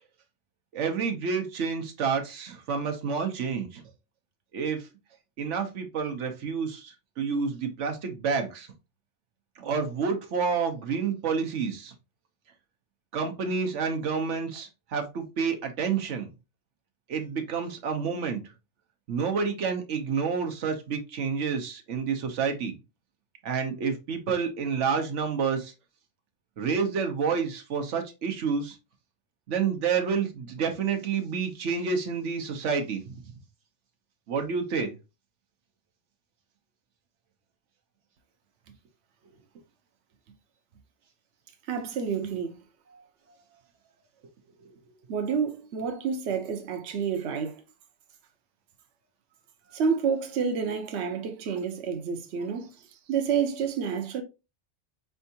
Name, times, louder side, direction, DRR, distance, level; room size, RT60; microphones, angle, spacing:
voice 1, 0.7-3.8 4.5-4.9 5.4-8.7 9.6-11.9 13.1-16.3 17.1-18.4 19.1-22.7 23.4-25.7 26.6-28.8 29.5-33.2 34.3-34.9 42.9-43.0 44.6-44.7, right 5 dB, 90° right, 1.2 m, -29 dB
voice 2, 41.7-42.6 45.1-47.6 49.7-54.2, right 6 dB, 70° right, 0.9 m, -29 dB
4.5 x 3.4 x 2.7 m
omnidirectional pair, 1.2 m